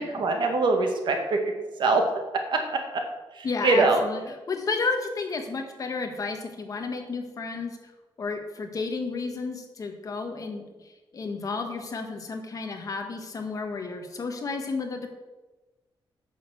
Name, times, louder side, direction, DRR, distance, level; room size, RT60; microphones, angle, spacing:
voice 1, 0.0-1.4 1.8-2.0 2.5-2.8 3.4-4.0, right 3 dB, 60° right, 3 dB, 2.0 m, -23 dB
voice 2, 3.4-7.8 8.2-10.6 11.1-15.1, left 4 dB, 40° left, 4 dB, 1.6 m, -32 dB
9.2 x 6.7 x 7.7 m, 1.2 s
wide cardioid pair, 160°, 9 cm